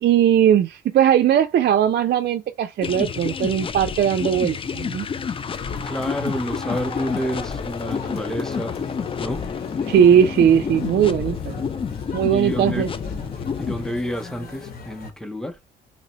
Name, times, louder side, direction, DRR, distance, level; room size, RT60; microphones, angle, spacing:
voice 1, 0.0-5.1 9.9-11.6 12.1-12.9, right 9 dB, 55° right, 0.4 m, -18 dB
sound 1, 2.8-13.9, left 6 dB, 25° left, 0.3 m, -29 dB
sound 2, 5.5-15.1, left 5 dB, 50° left, 1.2 m, -38 dB
voice 2, 5.8-8.9 9.2-9.5 12.3-12.9 13.6-15.6, equal, ahead, 0.8 m, -29 dB
2.9 x 2.7 x 4.2 m
cardioid pair, 90°, 20 cm